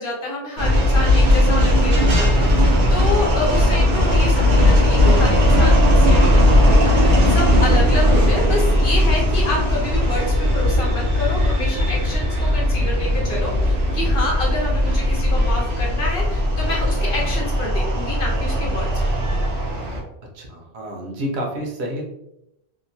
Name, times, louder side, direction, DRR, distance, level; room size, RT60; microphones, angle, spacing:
voice 1, 0.0-18.9, left 2 dB, 60° left, -2 dB, 0.9 m, -28 dB
sound 1, 0.6-20.0, left 1 dB, 60° right, 0.8 m, -17 dB
voice 2, 20.3-22.0, equal, 85° right, 0 dB, 1.0 m, -29 dB
2.8 x 2.1 x 2.6 m, 0.83 s
omnidirectional pair, 1.1 m